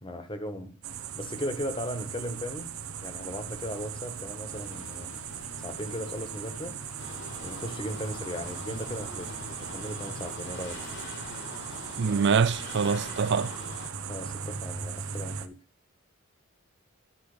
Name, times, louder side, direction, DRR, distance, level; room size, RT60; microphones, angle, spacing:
voice 1, 0.0-0.8 1.1-2.7 3.0-5.1 5.6-6.8 7.4-9.3 9.6-10.8 14.1-15.6, equal, 25° left, 1.5 m, -37 dB
sound 1, 0.8-15.5, right 7 dB, 70° right, 0.9 m, -39 dB
sound 2, 4.5-13.9, left 4 dB, 80° left, 1.9 m, -49 dB
sound 3, 7.0-13.9, left 3 dB, 55° left, 2.4 m, -44 dB
voice 2, 12.0-13.5, right 5 dB, 55° right, 0.5 m, -24 dB
11.5 x 5.2 x 5.0 m
head